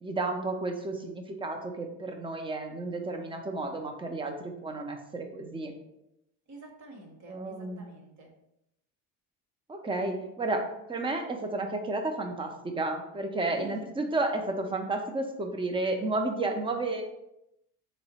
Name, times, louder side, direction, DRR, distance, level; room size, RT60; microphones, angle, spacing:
voice 1, 0.0-5.7 7.3-7.9 9.7-17.0, right 2 dB, 10° right, 4 dB, 0.5 m, -32 dB
voice 2, 6.5-8.3 13.5-13.8, right 2 dB, 40° right, 2 dB, 1.0 m, -48 dB
3.5 x 2.1 x 4.1 m, 0.83 s
supercardioid pair, 85°, 44 cm